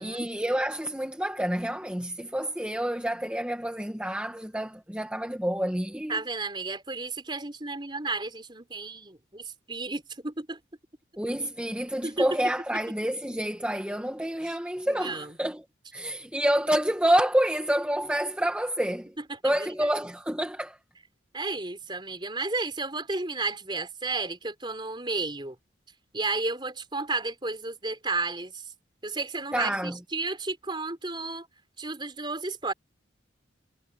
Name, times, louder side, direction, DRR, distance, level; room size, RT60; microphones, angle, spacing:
voice 1, 0.0-6.2 11.2-15.6 15.9-19.1 19.4-20.8 29.5-30.0, right 1 dB, 5° right, 1.6 m, -28 dB
voice 2, 6.1-10.6 12.0-12.3 14.4-14.5 14.9-15.4 19.3-19.7 21.3-25.6 26.1-28.6 29.0-31.5 31.8-32.7, right 3 dB, 25° right, 4.1 m, -32 dB
head